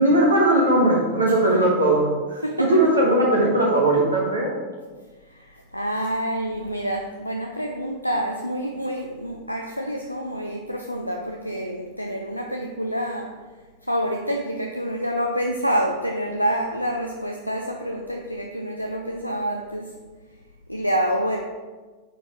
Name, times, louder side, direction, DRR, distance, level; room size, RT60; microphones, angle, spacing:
voice 1, 0.0-4.5, right 1 dB, 75° right, -1 dB, 1.4 m, -19 dB
voice 2, 2.4-2.9 5.3-13.4 13.9-19.9 20.7-21.4, equal, 90° left, 2 dB, 0.5 m, -27 dB
9.2 x 4.1 x 4.3 m, 1.4 s
figure-of-eight pair, 90°, 0 cm